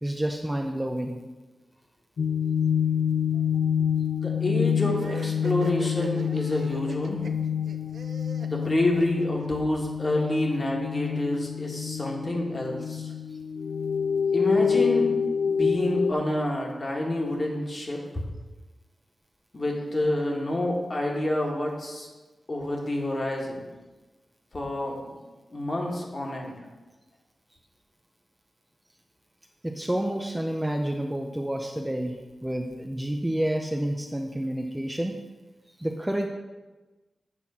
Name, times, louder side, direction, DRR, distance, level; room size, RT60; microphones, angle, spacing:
voice 1, 0.0-1.2 29.6-32.2 32.4-35.1 35.8-36.3, right 1 dB, 10° right, 2 dB, 0.6 m, -29 dB
sound 1, 2.2-16.1, left 7 dB, 85° left, 0.3 m, -27 dB
voice 2, 4.1-7.3 8.4-13.1 14.3-15.1 15.5-18.0 19.5-22.1 22.5-23.6 24.5-25.1 25.5-26.6, left 1 dB, 35° left, -1 dB, 1.8 m, -28 dB
sound 2, 4.8-9.5, right 4 dB, 75° right, 0.7 m, -41 dB
8.4 x 4.4 x 7.1 m, 1.2 s
wide cardioid pair, 130°, 0 cm